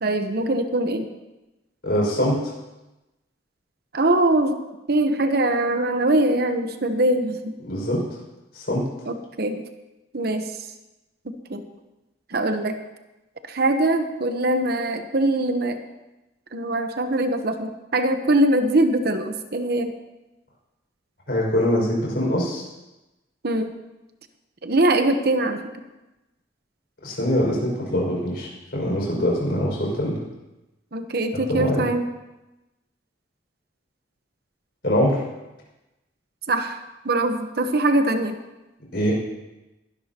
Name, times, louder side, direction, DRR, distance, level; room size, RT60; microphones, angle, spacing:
voice 1, 0.0-1.1 3.9-4.6 4.9-7.5 9.1-9.6 10.1-10.5 11.5-11.6 12.3-12.7 13.5-15.8 16.5-19.9 23.4-23.7 24.6-25.6 30.9-32.1 36.5-36.8 37.0-38.4, right 1 dB, 60° right, 8 dB, 1.0 m, -22 dB
voice 2, 1.8-2.4 7.6-8.0 8.5-8.8 21.3-22.6 27.0-30.2 31.5-31.8 34.8-35.2 38.9-39.1, equal, 60° left, -4 dB, 5.7 m, -23 dB
21.5 x 12.0 x 2.9 m, 1.0 s
head